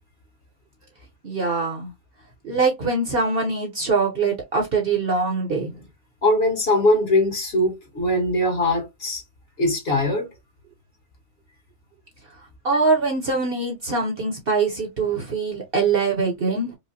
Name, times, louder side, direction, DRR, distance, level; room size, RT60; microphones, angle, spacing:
voice 1, 1.2-1.9 2.4-5.7 12.6-16.8, right 4 dB, 50° right, 0.9 m, -23 dB
voice 2, 6.2-9.2 9.6-10.3, left 1 dB, 45° left, 1.4 m, -21 dB
4.9 x 2.1 x 2.6 m
omnidirectional pair, 1.5 m